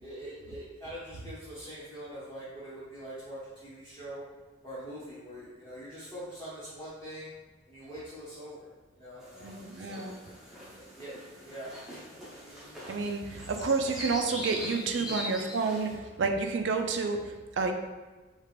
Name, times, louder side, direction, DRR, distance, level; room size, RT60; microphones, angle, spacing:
voice 1, 0.0-4.2 4.6-7.3 7.7-8.7 9.0-10.1 10.7-11.1 11.4-11.8, right 1 dB, 15° left, -12 dB, 1.1 m, -43 dB
sound 1, 9.2-15.9, equal, ahead, 0.7 m, -42 dB
voice 2, 9.4-10.2 12.9-17.7, right 4 dB, 70° right, 5 dB, 0.4 m, -30 dB
4.4 x 2.4 x 3.3 m, 1.3 s
head